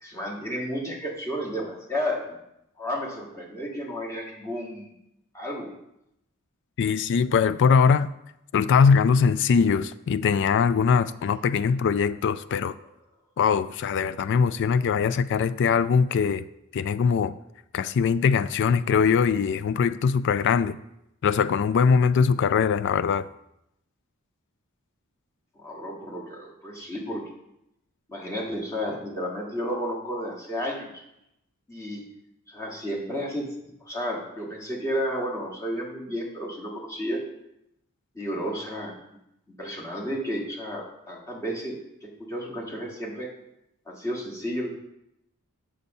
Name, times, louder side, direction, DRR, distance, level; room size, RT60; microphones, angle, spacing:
voice 1, 0.0-2.4 2.8-4.9 5.3-5.7 25.5-27.2 28.1-31.0 31.7-32.0 32.5-33.5 33.8-37.2 38.1-39.0 39.6-41.8 42.0-43.3 43.9-44.7, equal, 15° left, 1.6 m, -32 dB
voice 2, 6.8-8.1 8.5-12.7 13.4-16.4 16.7-17.4 17.7-20.8 21.2-23.3, left 6 dB, 55° left, 0.3 m, -21 dB
6.9 x 5.2 x 5.4 m
head